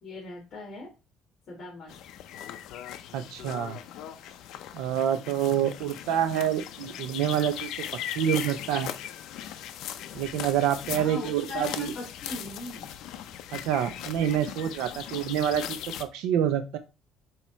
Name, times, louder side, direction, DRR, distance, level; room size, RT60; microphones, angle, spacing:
voice 1, 0.0-0.9 1.5-2.0 10.9-12.9, left 2 dB, 45° left, -4 dB, 2.5 m, -39 dB
sound 1, 1.9-16.0, left 10 dB, 65° left, 0.6 m, -39 dB
voice 2, 3.1-3.8 4.7-7.7 8.1-8.9 10.1-11.9 13.5-16.8, right 10 dB, 90° right, 9 dB, 0.8 m, -27 dB
7.9 x 3.0 x 4.5 m, 0.28 s
cardioid pair, 160°, 0 cm